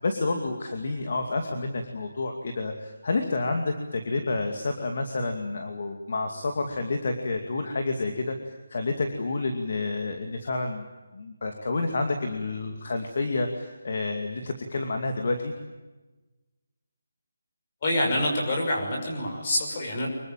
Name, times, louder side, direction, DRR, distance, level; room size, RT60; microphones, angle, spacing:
voice 1, 0.0-10.8 11.1-15.5, left 3 dB, 40° left, 5 dB, 2.4 m, -29 dB
voice 2, 17.8-20.1, left 1 dB, 25° left, 1 dB, 6.3 m, -26 dB
25.5 x 22.5 x 9.1 m, 1.2 s
hypercardioid pair, 180°, 0 cm